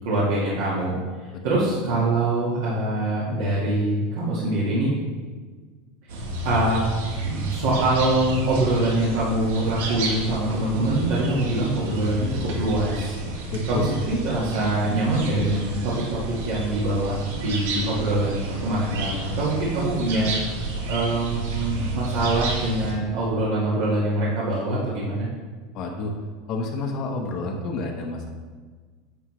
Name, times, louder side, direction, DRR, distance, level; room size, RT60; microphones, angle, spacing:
voice 1, 0.0-1.0 1.4-4.9 6.4-6.8 7.2-13.1 13.7-16.2 16.4-20.6 20.9-25.3, right 2 dB, 70° right, -7 dB, 1.6 m, -24 dB
sound 1, 6.1-22.9, right 1 dB, 90° right, 1.4 m, -31 dB
voice 2, 13.5-13.9 25.7-26.1 26.5-28.3, left 3 dB, 40° left, 2 dB, 0.9 m, -29 dB
9.6 x 5.5 x 3.2 m, 1.5 s
supercardioid pair, 155°, 0 cm